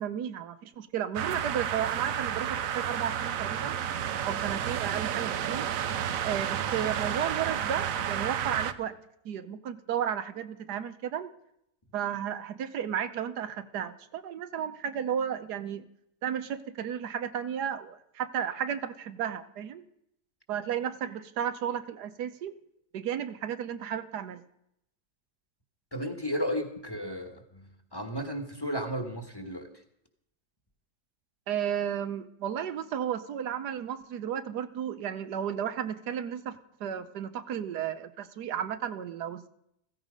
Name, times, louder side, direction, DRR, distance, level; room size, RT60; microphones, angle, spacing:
voice 1, 0.0-3.8 4.2-5.7 6.2-9.0 9.2-11.3 11.9-15.8 16.2-19.8 20.5-22.5 22.9-24.4 31.5-39.5, right 9 dB, 85° right, 12 dB, 1.4 m, -33 dB
sound 1, 1.1-8.7, right 9 dB, 65° right, 1.1 m, -31 dB
voice 2, 25.9-29.7, equal, 15° left, 6 dB, 1.5 m, -34 dB
15.0 x 15.0 x 5.2 m, 0.76 s
omnidirectional pair, 1.7 m